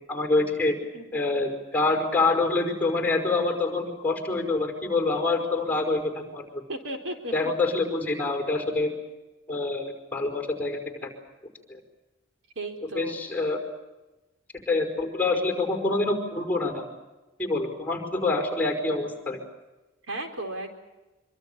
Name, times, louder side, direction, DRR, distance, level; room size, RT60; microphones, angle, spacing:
voice 1, 0.1-0.8 1.1-6.4 7.3-8.9 9.5-11.1 11.7-11.8 12.9-13.6 14.7-16.8 17.4-19.4, left 3 dB, 5° left, 4 dB, 5.1 m, -26 dB
voice 2, 0.9-1.4 6.7-7.5 12.6-13.1 20.1-20.8, right 1 dB, 80° right, 5 dB, 4.4 m, -35 dB
26.0 x 25.0 x 6.9 m, 1.1 s
head